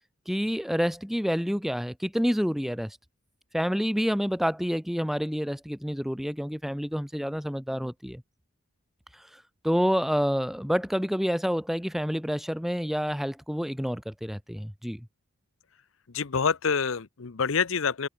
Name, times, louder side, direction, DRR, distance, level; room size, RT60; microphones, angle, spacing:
voice 1, 0.3-3.0 3.5-8.2 9.6-15.1, equal, ahead, 1.8 m, -28 dB
voice 2, 16.1-18.1, left 6 dB, 65° left, 0.7 m, -27 dB
open air
head